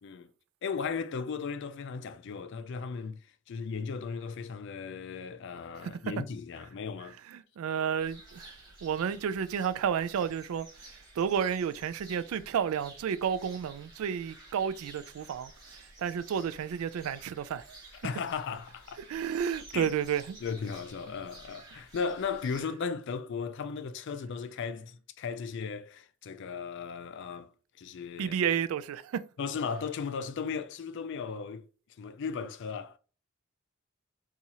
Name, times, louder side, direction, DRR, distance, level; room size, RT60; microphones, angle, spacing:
voice 1, 0.6-3.2 3.5-7.2 17.9-19.0 19.7-19.9 20.4-27.5 27.8-28.3 29.4-31.6 32.0-33.0, left 5 dB, 55° left, 0.3 m, -36 dB
voice 2, 7.3-8.6 8.8-17.8 19.1-20.4 28.2-29.3, right 8 dB, 75° right, 0.3 m, -31 dB
sound 1, 8.0-22.6, right 2 dB, 20° right, 1.5 m, -53 dB
4.1 x 2.4 x 2.8 m
head